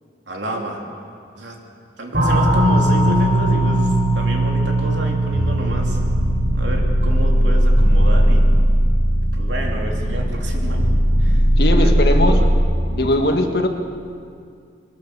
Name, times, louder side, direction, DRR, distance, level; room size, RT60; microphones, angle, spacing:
voice 1, 0.3-0.8 1.3-1.6 2.0-6.0 6.5-8.5 9.3-12.5 12.9-13.1, right 1 dB, 90° right, 0 dB, 3.1 m, -30 dB
sound 1, 2.1-8.5, right 1 dB, 60° right, 6.8 m, -20 dB
sound 2, 5.3-12.7, equal, 40° left, 2.1 m, -17 dB
voice 2, 11.6-12.5 12.9-13.7, left 1 dB, 60° left, 4 dB, 1.6 m, -19 dB
22.0 x 19.5 x 6.8 m, 2.3 s
head